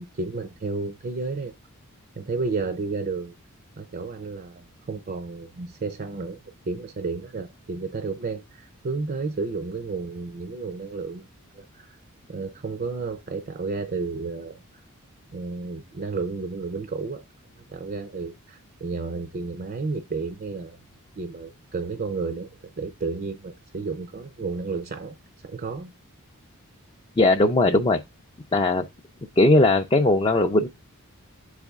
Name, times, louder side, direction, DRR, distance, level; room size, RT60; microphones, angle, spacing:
voice 1, 0.0-1.5 2.2-3.3 3.8-6.4 6.7-11.2 11.6-12.0 12.3-14.6 15.3-17.3 17.7-20.8 21.2-22.5 22.8-25.2 25.4-25.9, right 4 dB, 40° right, 0.5 m, -32 dB
voice 2, 27.2-28.0 28.5-28.9 29.4-30.7, left 2 dB, 20° left, 0.5 m, -19 dB
7.3 x 4.1 x 3.5 m
head